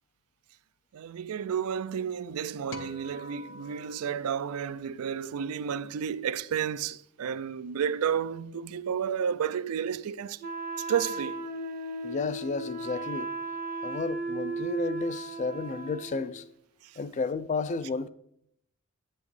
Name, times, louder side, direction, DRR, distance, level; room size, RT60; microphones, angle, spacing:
voice 1, 0.9-10.4 10.8-11.4 16.8-17.0, right 7 dB, 85° right, 0.4 m, -31 dB
sound 1, 2.7-5.2, left 3 dB, 60° left, 0.7 m, -47 dB
Wind instrument woodwind instrument, 10.4-16.3, right 2 dB, 40° right, 0.7 m, -35 dB
voice 2, 12.0-13.3 13.8-16.4 17.0-18.1, left 4 dB, 35° left, 0.3 m, -32 dB
9.1 x 8.2 x 3.2 m
head